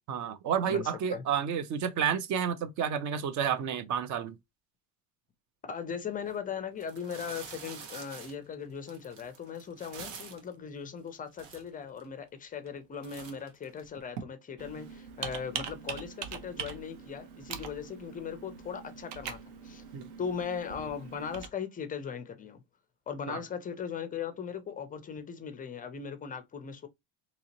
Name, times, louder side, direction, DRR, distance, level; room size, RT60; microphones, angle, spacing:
voice 1, 0.1-4.4 19.9-20.1 23.3-23.4, right 8 dB, 40° right, 0.6 m, -30 dB
voice 2, 0.7-1.2 5.7-19.8 20.2-22.6 23.1-26.9, left 7 dB, 20° left, 0.4 m, -38 dB
sound 1, 6.2-6.3 6.8-10.5 11.1-11.2 11.3-12.0 12.5-12.8 13.0-14.2, right 6 dB, 80° right, 1.3 m, -46 dB
Computer keyboard, 14.6-21.5, right 7 dB, 65° right, 0.9 m, -42 dB
3.9 x 2.9 x 2.9 m
cardioid pair, 140°, 44 cm